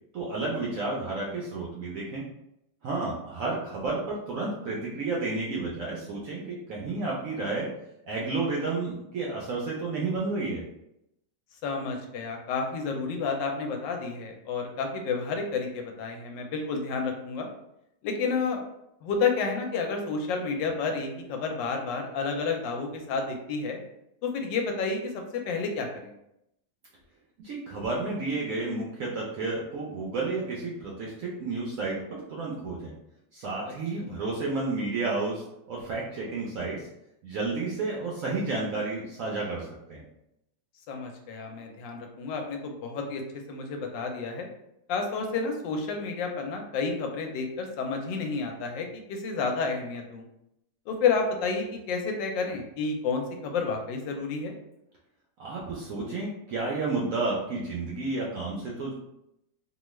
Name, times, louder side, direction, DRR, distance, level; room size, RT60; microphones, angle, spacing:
voice 1, 0.1-2.2 2.8-7.7 8.1-10.6 27.4-32.9 33.3-36.9 37.2-40.0 55.4-58.9, right 3 dB, 70° right, -4 dB, 0.8 m, -31 dB
voice 2, 11.6-17.5 18.0-18.6 19.0-23.8 24.2-26.1 40.9-43.2 43.5-44.5 44.9-50.2 50.9-54.5, left 4 dB, 90° left, 3 dB, 1.3 m, -30 dB
3.1 x 2.3 x 3.1 m, 0.82 s
omnidirectional pair, 1.9 m